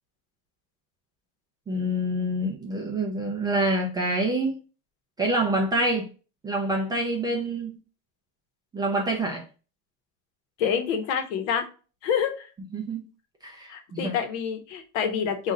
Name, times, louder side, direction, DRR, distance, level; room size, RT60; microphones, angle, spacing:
voice 1, 1.7-4.5 5.2-6.1 6.4-7.8 8.7-9.4 12.7-13.0 13.4-14.1, right 1 dB, 10° right, 0 dB, 0.3 m, -26 dB
voice 2, 10.6-11.7 12.0-12.5 13.7-15.5, left 7 dB, 70° left, 7 dB, 1.0 m, -27 dB
3.9 x 2.4 x 4.1 m, 0.35 s
cardioid pair, 170°, 36 cm